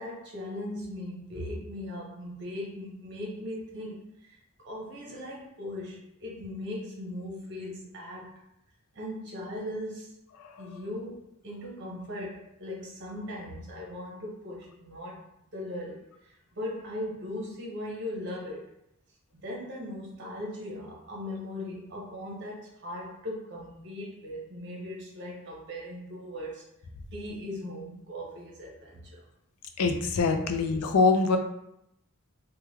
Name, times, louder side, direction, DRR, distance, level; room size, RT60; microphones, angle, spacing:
voice 1, 0.0-8.4 8.9-10.2 10.6-18.7 19.3-26.6 27.1-29.2 30.5-30.6, left 1 dB, 50° right, -3 dB, 0.9 m, -39 dB
voice 2, 29.8-31.4, left 4 dB, 90° left, 6 dB, 0.4 m, -24 dB
3.4 x 2.3 x 3.1 m, 0.79 s
head